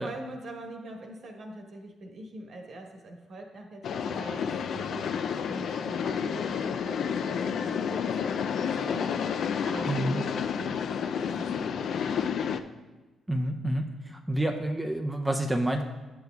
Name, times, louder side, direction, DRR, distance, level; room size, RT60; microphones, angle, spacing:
voice 1, 0.0-4.4 4.7-9.2 9.6-12.8, right 2 dB, 65° right, 2 dB, 1.2 m, -43 dB
sound 1, 3.8-12.6, left 7 dB, 70° left, 0.3 m, -30 dB
voice 2, 9.9-10.2 13.3-13.9 14.3-15.8, right 1 dB, 10° right, 3 dB, 0.5 m, -28 dB
9.3 x 6.4 x 2.3 m, 1.2 s
cardioid pair, 70°, 0 cm